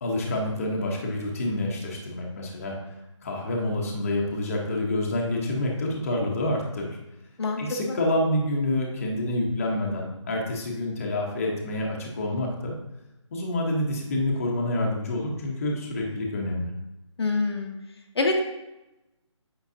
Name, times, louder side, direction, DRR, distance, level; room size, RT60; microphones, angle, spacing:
voice 1, 0.0-2.8 3.2-6.9 7.6-12.7 13.3-16.7, left 1 dB, 30° left, -1 dB, 1.0 m, -27 dB
voice 2, 17.2-17.7 18.2-18.4, left 3 dB, 55° left, 2 dB, 0.9 m, -25 dB
8.2 x 5.5 x 2.7 m, 0.96 s
figure-of-eight pair, 170°, 16 cm